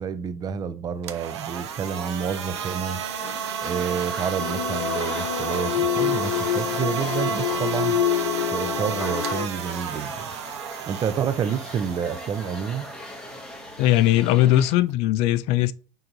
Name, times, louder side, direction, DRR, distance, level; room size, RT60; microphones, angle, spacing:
voice 1, 0.0-3.0 3.6-8.0 8.5-10.3 10.9-12.9, right 7 dB, 25° right, 0.5 m, -29 dB
sound 1, 0.9-15.0, right 7 dB, 80° right, 0.6 m, -32 dB
sound 2, 1.5-14.7, left 1 dB, 5° left, 0.8 m, -40 dB
sound 3, 4.4-9.5, left 11 dB, 80° left, 0.7 m, -27 dB
voice 2, 13.8-15.7, left 14 dB, 50° left, 0.4 m, -19 dB
4.5 x 3.8 x 2.6 m
supercardioid pair, 115°, 14 cm